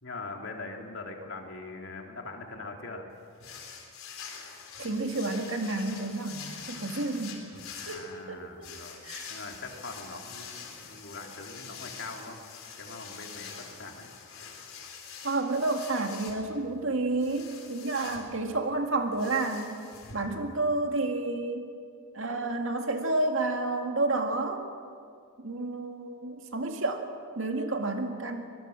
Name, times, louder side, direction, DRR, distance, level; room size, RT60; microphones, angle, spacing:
voice 1, 0.0-3.1 7.8-9.0 9.3-12.4 12.8-14.1, left 3 dB, 65° left, 2 dB, 2.8 m, -42 dB
sound 1, 3.4-20.8, left 6 dB, 80° left, 4.0 m, -45 dB
voice 2, 4.8-7.5 7.9-8.0 8.3-8.7 9.0-9.3 15.2-19.8 20.1-21.7 22.1-24.6 25.4-27.1 27.4-28.5, right 2 dB, 70° right, 4 dB, 2.0 m, -30 dB
24.0 x 20.0 x 6.5 m, 2.2 s
head